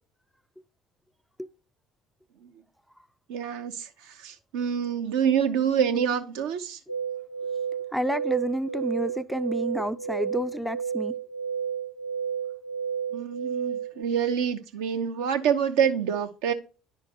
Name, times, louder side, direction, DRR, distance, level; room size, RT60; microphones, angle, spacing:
voice 1, 3.3-3.9 4.2-6.8 13.1-16.5, right 8 dB, 60° right, 0.7 m, -26 dB
sound 1, 6.9-14.0, right 7 dB, 80° left, 0.4 m, -32 dB
voice 2, 7.9-11.1, right 1 dB, ahead, 0.4 m, -29 dB
10.5 x 5.0 x 2.6 m
figure-of-eight pair, 55°, 0 cm